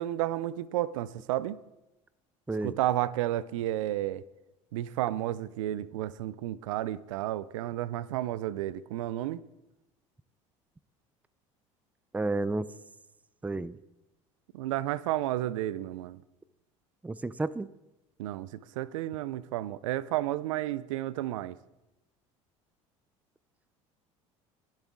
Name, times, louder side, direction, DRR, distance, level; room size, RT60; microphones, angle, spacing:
voice 1, 0.0-1.6 2.6-4.2 4.7-9.4 14.5-16.2 18.2-18.5 18.8-21.6, right 14 dB, 80° right, 0.5 m, -32 dB
voice 2, 12.1-12.7 13.4-13.8 17.0-17.7, right 2 dB, 10° right, 0.4 m, -31 dB
20.5 x 7.4 x 3.7 m
hypercardioid pair, 70°, 17 cm